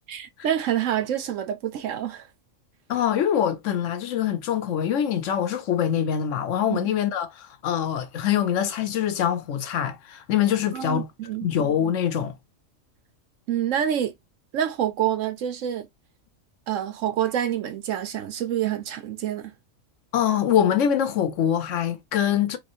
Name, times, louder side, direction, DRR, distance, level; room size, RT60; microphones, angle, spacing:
voice 1, 0.1-2.2 6.7-6.9 10.7-11.5 13.5-14.1 14.5-15.9 16.7-19.5, right 10 dB, 75° right, 1.1 m, -27 dB
voice 2, 2.9-11.1 11.4-12.3 20.1-22.6, left 9 dB, 70° left, 1.0 m, -24 dB
3.6 x 3.0 x 2.6 m
omnidirectional pair, 1.4 m